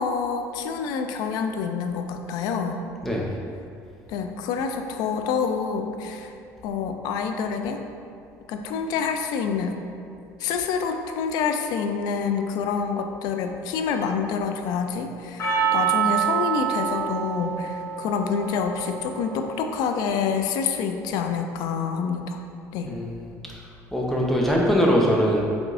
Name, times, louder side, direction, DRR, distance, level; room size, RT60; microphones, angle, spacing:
voice 1, 0.0-2.8 4.1-6.3 6.6-7.8 8.5-9.8 10.4-22.4 22.7-22.9, left 6 dB, 75° left, 6 dB, 0.4 m, -27 dB
Percussion, 15.4-19.9, right 8 dB, 45° left, 0.9 m, -27 dB
voice 2, 22.8-23.3 23.9-25.4, equal, 5° left, -3 dB, 0.6 m, -21 dB
4.8 x 3.5 x 2.5 m, 2.5 s
cardioid pair, 135°, 7 cm